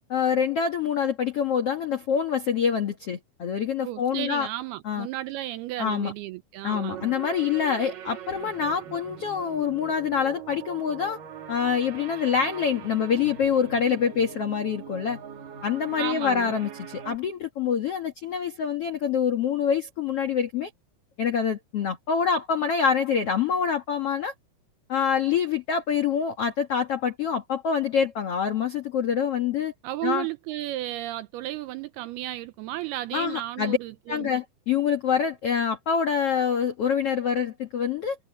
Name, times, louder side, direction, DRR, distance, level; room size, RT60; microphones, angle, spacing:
voice 1, 0.1-4.5 4.8-5.1 5.8-6.1 6.6-11.2 11.5-15.2 15.6-20.7 21.2-24.3 24.9-29.7 30.0-30.3 33.1-33.8 34.1-38.2, left 7 dB, 70° left, 1.4 m, -26 dB
voice 2, 3.8-7.2 16.0-16.5 29.8-34.3, right 15 dB, 80° right, 2.4 m, -33 dB
sound 1, 6.7-17.2, right 8 dB, 55° right, 3.6 m, -41 dB
omnidirectional pair, 5.0 m